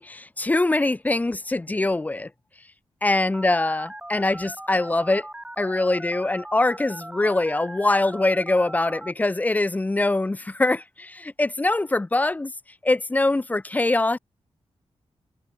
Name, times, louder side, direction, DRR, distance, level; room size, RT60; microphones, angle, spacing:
voice 1, 0.0-2.3 3.0-5.3 5.6-12.5 12.8-14.2, left 2 dB, 15° left, 0.8 m, -23 dB
Telephone, 3.3-9.1, right 1 dB, 10° right, 1.8 m, -39 dB
wide cardioid pair, 165°, 10 cm